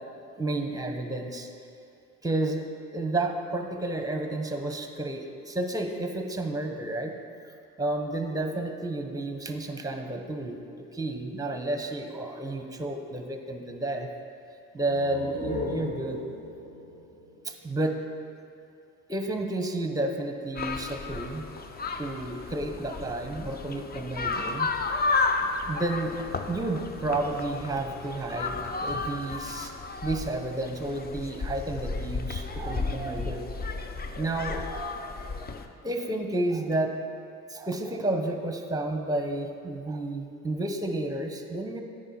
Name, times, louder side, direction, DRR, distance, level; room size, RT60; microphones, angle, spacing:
voice 1, 0.4-1.5 2.2-2.6 2.9-7.1 7.8-14.1 14.7-16.2 17.4-18.0 19.1-21.5 22.0-24.7 25.7-26.1 26.5-29.7 30.0-33.8 34.2-35.5 35.8-36.9 37.5-41.8, right 2 dB, 10° right, 5 dB, 0.9 m, -31 dB
sound 1, 14.7-18.3, left 2 dB, 45° left, 1.6 m, -38 dB
sound 2, 20.6-35.7, left 3 dB, 30° left, 0.6 m, -33 dB
8.9 x 5.3 x 4.3 m, 2.6 s
supercardioid pair, 65°, 33 cm